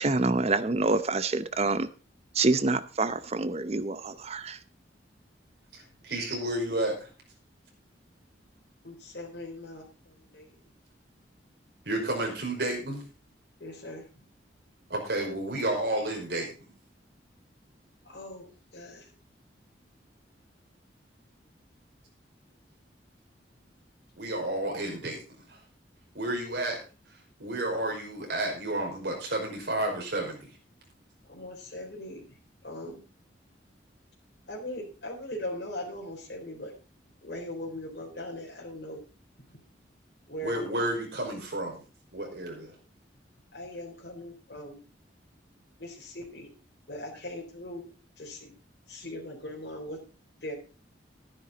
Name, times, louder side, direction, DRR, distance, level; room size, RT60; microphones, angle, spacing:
voice 1, 0.0-1.9 2.3-4.6, right 3 dB, 35° right, 0.7 m, -27 dB
voice 2, 5.7-7.1 11.9-13.0 14.9-16.7 24.2-25.2 25.5-25.6 26.1-26.8 27.4-30.5 40.4-41.8 42.1-42.7, right 1 dB, 65° right, 5.3 m, -31 dB
voice 3, 8.8-10.5 13.6-14.1 18.0-19.1 31.3-32.4 32.6-33.0 34.5-36.7 37.2-39.0 39.5-39.6 40.3-40.7 43.5-44.8 45.8-46.5 46.9-48.5 48.9-50.0 50.4-50.6, left 1 dB, 60° left, 3.9 m, -40 dB
12.5 x 10.5 x 4.1 m
head